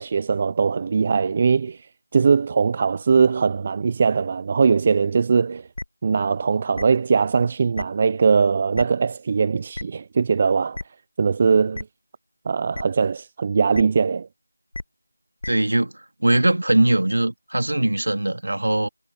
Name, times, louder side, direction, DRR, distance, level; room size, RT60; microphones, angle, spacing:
voice 1, 0.0-1.9 2.1-5.7 6.0-10.8 11.2-11.9 12.5-14.3, right 5 dB, 20° right, 0.6 m, -20 dB
sound 1, 5.7-5.8 6.7-6.8 7.7-7.8 8.7-8.8 9.7-9.8 10.7-10.8 11.7-11.8 12.7-12.8 13.7-13.8 14.7-14.8 15.4-15.5, left 2 dB, 50° left, 0.8 m, -31 dB
voice 2, 15.5-18.9, right 1 dB, 60° right, 2.7 m, -21 dB
figure-of-eight pair, 175°, 0 cm